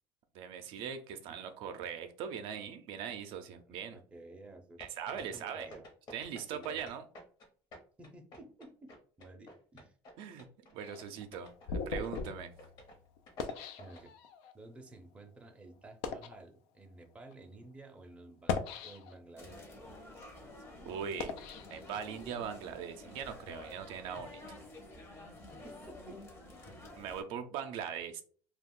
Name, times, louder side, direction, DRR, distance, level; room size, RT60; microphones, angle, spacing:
voice 1, 0.3-4.0 4.8-5.7 6.1-7.0 10.2-12.5 20.8-21.4 21.7-24.6 27.0-28.2, right 7 dB, 65° right, 0.4 m, -41 dB
voice 2, 3.6-4.8 5.1-5.8 6.5-6.9 8.0-8.9 9.2-10.0 13.8-14.1 14.5-19.9 25.5-26.2, right 2 dB, 15° right, 0.5 m, -53 dB
sound 1, 4.8-7.5 7.7-10.1 10.4-10.7 11.0-11.1 11.3-11.7 12.0-12.3 12.6-13.0 13.3-14.0, left 1 dB, 50° left, 1.0 m, -51 dB
sound 2, 10.8-14.5 15.2-15.3 15.9-16.4 17.2-17.3 18.3-19.4 19.9-22.4, left 5 dB, 85° left, 0.4 m, -40 dB
sound 3, 19.4-27.2, left 2 dB, 25° left, 0.7 m, -50 dB
2.4 x 2.2 x 3.6 m
cardioid pair, 135°, 9 cm